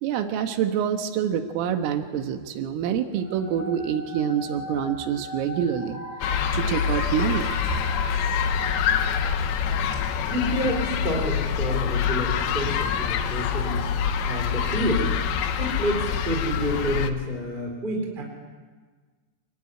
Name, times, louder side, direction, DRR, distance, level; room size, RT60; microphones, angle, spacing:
voice 1, 0.0-6.0 6.5-7.5, right 8 dB, 85° right, 6 dB, 3.9 m, -26 dB
sound 1, 3.1-9.9, equal, 20° left, 7.5 m, -38 dB
sound 2, 6.2-17.1, left 7 dB, 70° left, 2.5 m, -26 dB
voice 2, 10.3-15.1 15.6-18.2, equal, 10° right, 1 dB, 3.6 m, -28 dB
27.5 x 19.5 x 9.9 m, 1.4 s
omnidirectional pair, 5.8 m